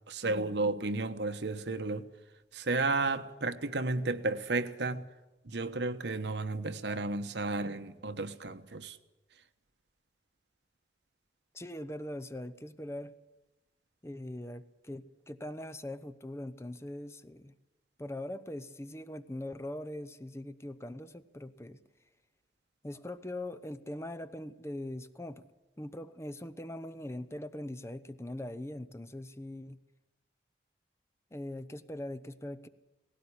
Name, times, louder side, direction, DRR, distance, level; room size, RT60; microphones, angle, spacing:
voice 1, 0.1-2.1 2.5-5.1 5.4-9.0, right 3 dB, 75° right, 1.2 m, -33 dB
voice 2, 11.5-13.1 14.0-17.5 18.0-21.8 22.8-25.4 25.8-29.8 31.3-32.7, left 1 dB, 15° left, 0.7 m, -41 dB
18.5 x 17.0 x 9.9 m
head